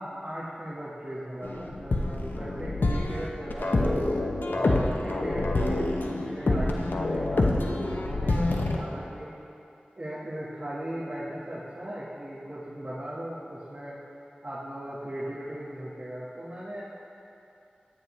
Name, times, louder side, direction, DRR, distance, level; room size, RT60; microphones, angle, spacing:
voice 1, 0.0-4.0 4.5-9.3 9.9-14.0 14.4-16.8, right 1 dB, 40° right, -10 dB, 1.4 m, -38 dB
sound 1, 1.4-8.8, left 2 dB, 80° left, 0.7 m, -27 dB
10.5 x 9.1 x 3.1 m, 2.8 s
wide cardioid pair, 50°, 3 cm